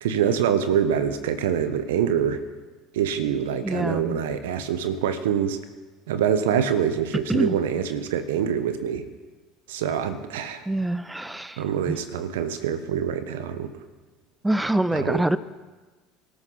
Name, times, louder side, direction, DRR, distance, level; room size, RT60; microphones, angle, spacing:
voice 1, 0.0-2.4 2.9-5.6 6.1-9.1 9.7-10.7 11.6-13.7 14.9-15.2, right 8 dB, 75° right, 11 dB, 1.2 m, -25 dB
voice 2, 3.6-4.2 7.3-7.6 10.7-12.0 14.4-15.4, right 1 dB, 10° right, 15 dB, 0.6 m, -25 dB
24.0 x 14.0 x 4.1 m, 1.3 s
hypercardioid pair, 65°, 0 cm